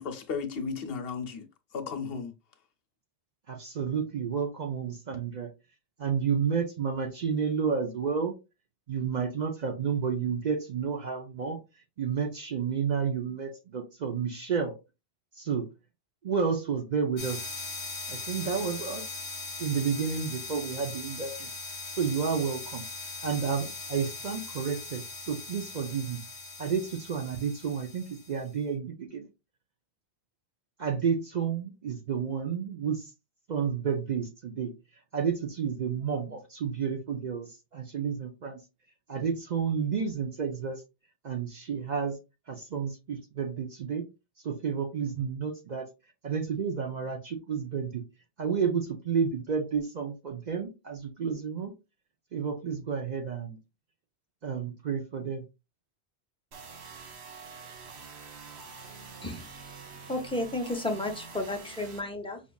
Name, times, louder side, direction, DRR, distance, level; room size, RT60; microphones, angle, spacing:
voice 1, 0.0-1.4 1.7-2.3, left 5 dB, 65° left, 0.9 m, -34 dB
voice 2, 3.5-5.5 6.0-8.3 8.9-11.6 12.0-14.8 15.4-15.7 16.2-17.5 18.1-19.1 19.6-21.5 22.0-22.8 23.2-26.2 26.6-29.3 30.8-33.1 33.5-34.7 35.1-38.6 39.1-40.8 41.2-42.2 42.5-44.1 44.4-45.9 46.2-48.0 48.4-51.7 52.3-53.6 54.4-55.4, right 6 dB, 50° right, 0.6 m, -31 dB
sound 1, 17.2-28.4, left 3 dB, 35° left, 0.8 m, -40 dB
sound 2, 56.5-62.0, right 5 dB, 75° right, 1.1 m, -46 dB
voice 3, 59.2-59.8 60.1-62.4, left 1 dB, 5° left, 0.5 m, -33 dB
5.2 x 2.4 x 2.2 m
omnidirectional pair, 1.1 m